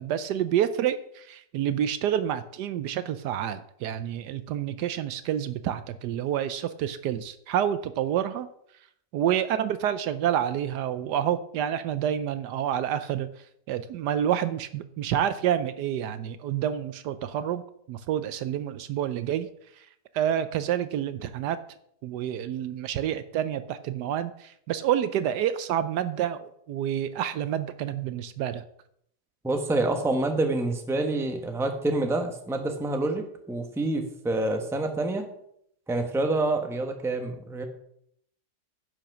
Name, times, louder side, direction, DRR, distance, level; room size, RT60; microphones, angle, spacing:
voice 1, 0.0-8.5 9.1-13.3 13.7-17.6 17.9-19.5 19.8-19.9 20.1-21.6 22.0-28.6, right 10 dB, 75° right, 12 dB, 1.1 m, -28 dB
voice 2, 29.4-35.3 35.9-37.6, right 2 dB, ahead, 4 dB, 0.9 m, -27 dB
10.5 x 5.9 x 6.1 m, 0.71 s
omnidirectional pair, 1.9 m